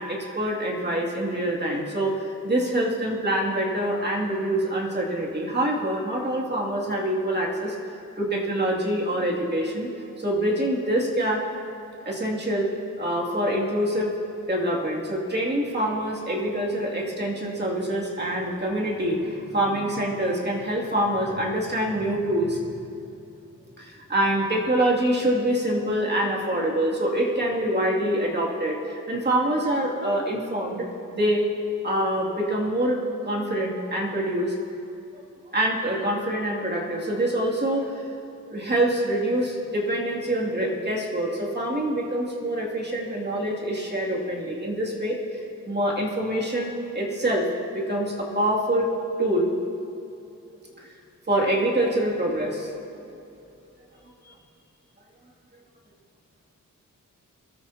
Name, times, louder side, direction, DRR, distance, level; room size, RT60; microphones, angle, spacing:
voice 1, 0.0-7.8 8.2-9.9 10.2-11.5 12.0-14.1 14.5-22.6 23.8-31.4 31.8-33.0 33.2-34.5 35.1-35.2 35.5-38.1 38.5-47.5 47.7-48.9 49.2-49.5 50.8-50.9 51.3-52.7 54.2-54.3, right 1 dB, 30° right, -3 dB, 2.6 m, -25 dB
23.0 x 13.0 x 2.9 m, 2.8 s
cardioid pair, 85°, 33 cm